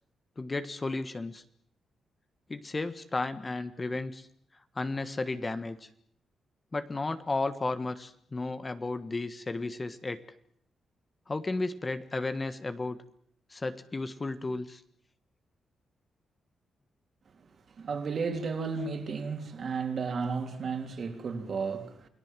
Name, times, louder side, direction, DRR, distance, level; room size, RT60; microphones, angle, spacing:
voice 1, 0.4-1.4 2.5-4.3 4.7-5.9 6.7-10.2 11.3-13.0 13.5-14.8, left 3 dB, 25° left, 1.4 m, -33 dB
voice 2, 17.4-22.1, right 5 dB, 50° right, 3.5 m, -33 dB
29.0 x 19.5 x 7.6 m
cardioid pair, 115°, 0 cm